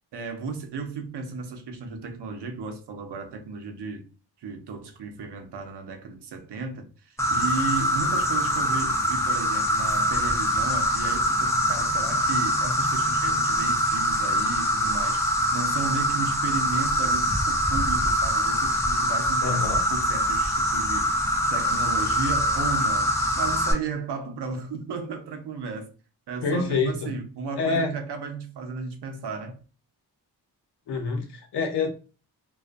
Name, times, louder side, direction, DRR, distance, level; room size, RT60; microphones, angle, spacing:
voice 1, 0.1-4.1 4.4-21.1 21.5-25.9 26.3-29.6, right 4 dB, 85° right, 0.7 m, -34 dB
Insect, 7.2-23.7, equal, 10° left, 0.4 m, -24 dB
voice 2, 19.4-19.8 26.4-26.9 27.6-27.9 30.9-31.9, left 4 dB, 80° left, 0.8 m, -26 dB
2.4 x 2.3 x 2.5 m
wide cardioid pair, 150°, 39 cm